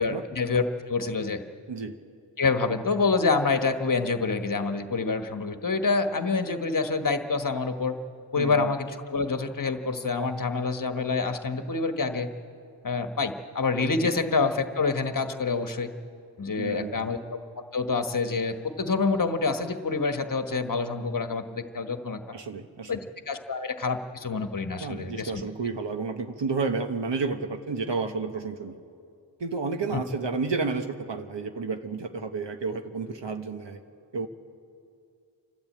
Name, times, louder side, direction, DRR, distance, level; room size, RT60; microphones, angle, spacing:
voice 1, 0.0-1.4 2.4-7.9 8.3-12.3 12.8-15.9 16.4-17.2 17.7-22.3 22.9-23.0 23.3-25.4 29.9-30.0, left 4 dB, 45° left, 7 dB, 1.3 m, -27 dB
voice 2, 8.3-8.7 14.0-14.1 16.6-17.1 22.3-23.0 24.8-28.8 29.4-33.8 34.1-34.3, right 4 dB, 65° right, 6 dB, 1.2 m, -31 dB
28.5 x 12.5 x 8.6 m, 2.4 s
wide cardioid pair, 95°, 46 cm